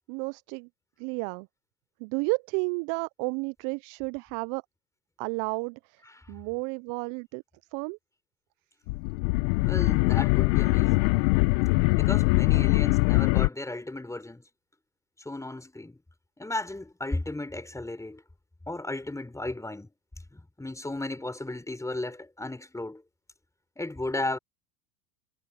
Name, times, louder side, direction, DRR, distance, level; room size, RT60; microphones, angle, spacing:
voice 1, 0.1-0.7 1.0-1.5 2.0-4.6 5.2-5.8 6.3-7.4 7.7-8.0, right 32 dB, 45° right, 0.6 m, -31 dB
sound 1, 8.9-13.5, left 27 dB, 55° left, 1.3 m, -22 dB
voice 2, 9.6-11.1 11.9-14.4 15.3-16.0 16.4-18.2 18.7-19.9 20.3-23.0 23.8-24.4, left 2 dB, 5° left, 5.5 m, -35 dB
hypercardioid pair, 95°, 47 cm